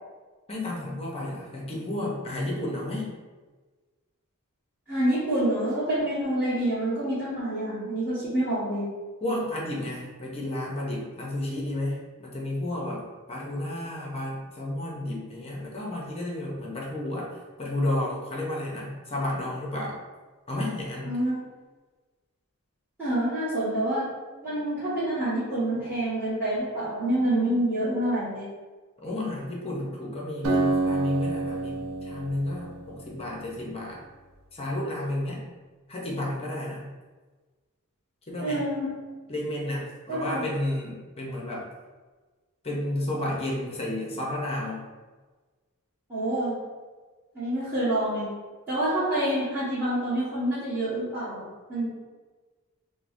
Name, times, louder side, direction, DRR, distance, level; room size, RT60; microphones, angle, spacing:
voice 1, 0.5-3.1 9.2-13.0 13.3-17.3 17.6-20.0 20.5-21.1 29.0-34.0 34.5-35.4 35.9-36.9 38.3-38.6 39.3-41.7 42.6-44.9, left 1 dB, 25° left, -3 dB, 0.6 m, -32 dB
voice 2, 4.9-8.9 21.0-21.4 23.0-24.1 24.4-28.5 38.4-38.9 40.1-40.5 46.1-46.6 47.3-48.3 48.7-51.4 51.7-51.9, right 1 dB, 10° right, -15 dB, 1.3 m, -27 dB
Acoustic guitar, 30.4-34.0, right 2 dB, 75° right, 0.6 m, -29 dB
4.5 x 2.0 x 2.5 m, 1.3 s
head